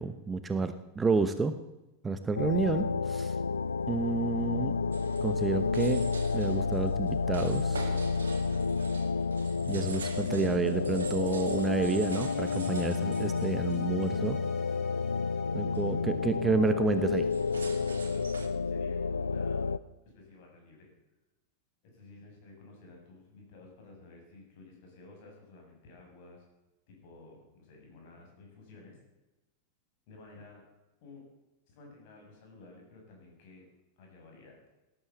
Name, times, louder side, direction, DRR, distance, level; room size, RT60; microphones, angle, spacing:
voice 1, 0.0-1.5 2.0-3.3 3.9-4.7 5.2-6.0 6.3-7.9 9.7-14.4 15.5-17.3, right 4 dB, 15° right, 10 dB, 1.0 m, -30 dB
sound 1, 2.4-19.8, left 4 dB, 75° left, 0.5 m, -30 dB
sound 2, 4.9-14.3 14.7-15.0 15.4-15.5 15.7-16.0 16.9-18.5, right 5 dB, 70° right, 2.3 m, -46 dB
sound 3, 11.7-17.0, left 4 dB, 20° left, 4.4 m, -55 dB
voice 2, 17.7-19.7 20.1-20.9 21.8-26.5 26.9-29.0 30.1-30.7 31.0-31.2 31.7-33.7 34.0-34.6, left 3 dB, 50° left, 1 dB, 7.1 m, -53 dB
18.5 x 11.0 x 7.1 m, 1.0 s
figure-of-eight pair, 90°, 0 cm